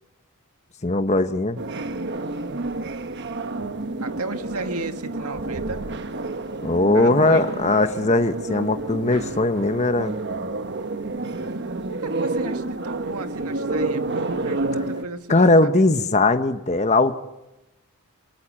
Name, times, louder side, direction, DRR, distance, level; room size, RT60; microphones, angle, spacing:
voice 1, 0.8-1.6 6.6-10.1 15.3-17.1, left 2 dB, 30° left, 9 dB, 1.0 m, -19 dB
sound 1, 1.6-15.0, right 2 dB, 50° right, 1.2 m, -29 dB
voice 2, 4.0-5.8 6.9-7.5 11.9-15.7, right 3 dB, 85° right, 7 dB, 2.1 m, -33 dB
24.5 x 23.5 x 8.9 m, 1.0 s
head